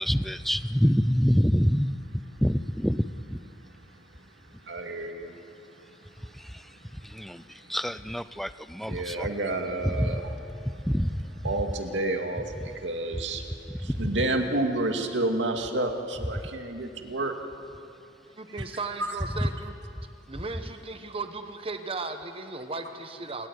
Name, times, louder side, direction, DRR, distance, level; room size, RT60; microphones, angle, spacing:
voice 1, 0.0-2.0 2.4-3.4 6.4-6.6 7.0-7.4 7.7-9.3 9.8-10.2 10.9-11.3 13.8-14.1, equal, ahead, 14 dB, 0.5 m, -26 dB
voice 2, 4.7-5.4 8.8-10.3 11.4-13.4 13.8-17.3 18.6-18.7 19.0-19.1, right 2 dB, 85° right, 4 dB, 2.4 m, -30 dB
voice 3, 18.4-19.7 20.3-23.5, right 3 dB, 30° right, 7 dB, 1.2 m, -36 dB
28.5 x 14.5 x 9.6 m, 2.5 s
head